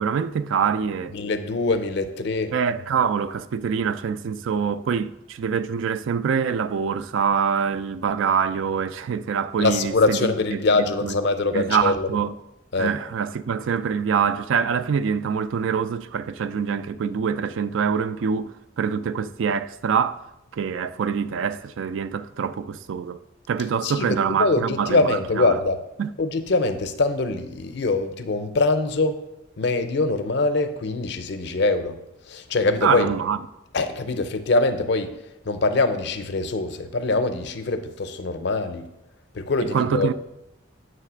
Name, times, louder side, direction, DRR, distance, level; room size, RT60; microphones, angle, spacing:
voice 1, 0.0-1.2 2.5-11.1 11.5-12.3 12.8-20.2 20.5-23.2 23.5-25.1 25.3-25.6 26.0-26.1 32.8-33.4 39.7-40.1, right 6 dB, 75° right, 0.3 m, -25 dB
voice 2, 1.1-2.5 9.6-12.1 12.7-12.9 23.8-25.8 26.2-29.2 29.6-32.0 32.3-33.1 33.7-35.1 35.5-38.9 39.3-40.1, left 3 dB, 60° left, 0.5 m, -23 dB
7.4 x 3.2 x 6.1 m
head